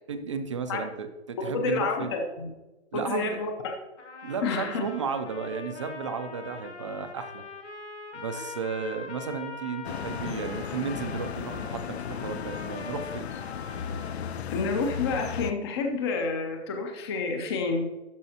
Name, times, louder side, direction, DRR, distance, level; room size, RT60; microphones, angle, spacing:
voice 1, 0.1-2.1 2.9-3.4 4.2-7.4 8.1-13.3, right 5 dB, 30° right, 9 dB, 0.4 m, -34 dB
voice 2, 1.4-2.5 2.9-3.7 4.4-4.8 8.3-8.4 14.5-17.9, left 4 dB, 25° left, 3 dB, 0.5 m, -29 dB
Trumpet, 4.0-14.4, left 4 dB, 90° left, 1.6 m, -42 dB
sound 1, 9.8-15.5, left 8 dB, 65° left, 0.6 m, -35 dB
12.5 x 5.1 x 2.8 m, 1.1 s
hypercardioid pair, 155°, 34 cm